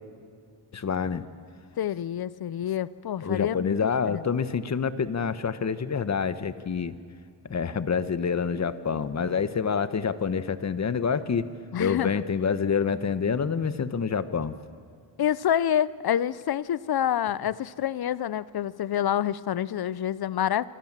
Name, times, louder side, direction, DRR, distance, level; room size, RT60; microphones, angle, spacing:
voice 1, 0.7-1.2 3.2-6.9 7.5-11.5 11.8-14.6, left 6 dB, 40° left, 12 dB, 1.4 m, -27 dB
voice 2, 1.8-3.8 4.0-4.2 11.7-12.1 15.2-20.7, left 10 dB, 55° left, 18 dB, 0.8 m, -27 dB
26.5 x 25.0 x 7.6 m, 2.2 s
cardioid pair, 95°, 44 cm